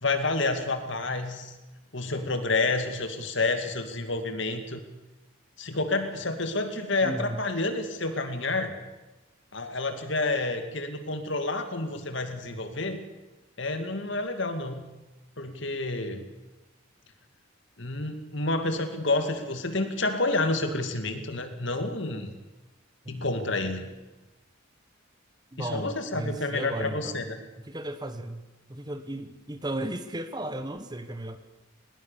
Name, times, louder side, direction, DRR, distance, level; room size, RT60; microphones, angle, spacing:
voice 1, 0.0-1.5 1.9-4.8 5.6-8.7 9.5-13.0 13.6-14.9 15.4-16.2 17.8-22.3 23.1-23.9 25.6-27.2, left 2 dB, 60° left, 7 dB, 2.4 m, -29 dB
voice 2, 7.0-7.4 23.0-23.3 25.5-27.2 27.7-28.4 28.7-31.4, right 1 dB, 20° right, 10 dB, 1.2 m, -35 dB
19.5 x 19.5 x 6.9 m, 1.1 s
head